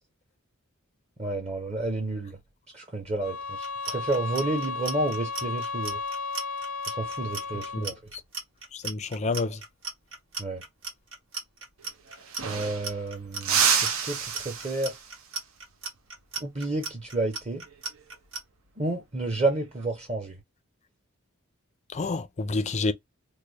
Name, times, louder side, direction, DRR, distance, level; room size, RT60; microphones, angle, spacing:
voice 1, 1.2-2.4 2.7-6.0 6.9-7.9 10.4-10.6 12.4-15.0 16.4-17.6 18.8-20.4, right 2 dB, 30° right, 0.7 m, -30 dB
sound 1, 3.2-8.0, left 4 dB, 90° left, 0.5 m, -34 dB
Clock, 3.6-18.4, right 4 dB, 70° right, 1.6 m, -37 dB
voice 2, 8.7-9.6 21.9-22.9, left 3 dB, 35° left, 0.4 m, -28 dB
sound 2, 11.8-11.9 12.1-13.0 13.4-15.2 17.7-18.0 19.4-19.8, right 6 dB, 85° right, 0.8 m, -28 dB
3.2 x 2.1 x 3.9 m
head